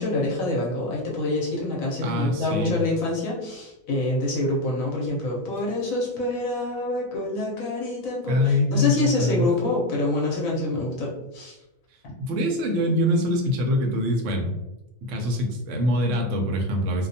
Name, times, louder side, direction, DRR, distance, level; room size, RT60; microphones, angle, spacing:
voice 1, 0.0-11.5, left 2 dB, 65° left, -3 dB, 1.0 m, -26 dB
voice 2, 2.0-2.7 8.3-9.5 12.2-14.5 15.0-17.1, left 1 dB, 65° right, 2 dB, 0.8 m, -24 dB
2.7 x 2.2 x 2.6 m, 0.95 s
omnidirectional pair, 1.7 m